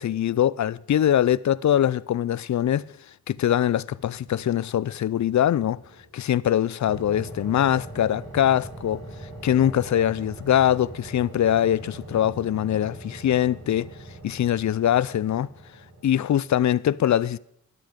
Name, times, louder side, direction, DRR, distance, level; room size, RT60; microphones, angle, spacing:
voice 1, 0.0-2.9 3.3-5.8 6.1-9.0 9.4-13.9 14.2-15.5 16.0-17.4, left 10 dB, 50° left, 0.5 m, -22 dB
sound 1, 3.9-6.2 6.8-16.2, right 2 dB, 45° right, 5.0 m, -42 dB
13.0 x 10.0 x 5.2 m
cardioid pair, 70°, 36 cm